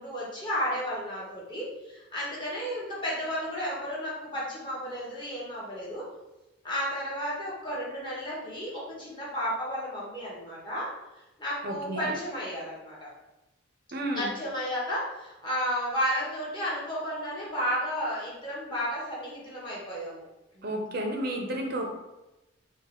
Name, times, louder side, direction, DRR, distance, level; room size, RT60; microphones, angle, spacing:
voice 1, 0.0-6.1 6.6-10.9 11.4-13.1 14.1-20.2 20.5-20.6, equal, 20° left, -7 dB, 1.2 m, -33 dB
voice 2, 11.6-12.2 13.9-14.3 20.6-21.9, right 1 dB, 45° right, 2 dB, 0.6 m, -32 dB
4.0 x 2.3 x 3.7 m, 0.99 s
head